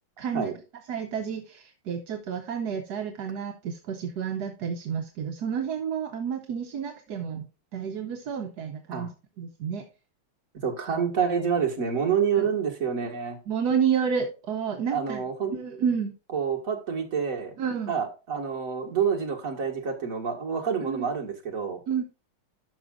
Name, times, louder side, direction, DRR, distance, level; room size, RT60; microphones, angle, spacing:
voice 1, 0.2-0.5 0.9-7.5 7.7-9.1 9.4-9.8 12.3-12.4 13.5-15.2 15.5-16.1 17.6-17.9 20.9-21.1 21.9-22.0, right 7 dB, 60° right, 5 dB, 1.2 m, -30 dB
voice 2, 10.6-13.4 14.9-15.5 16.3-17.6 17.9-21.8, right 6 dB, 45° right, 1 dB, 2.1 m, -27 dB
12.0 x 6.0 x 2.5 m, 0.32 s
omnidirectional pair, 2.3 m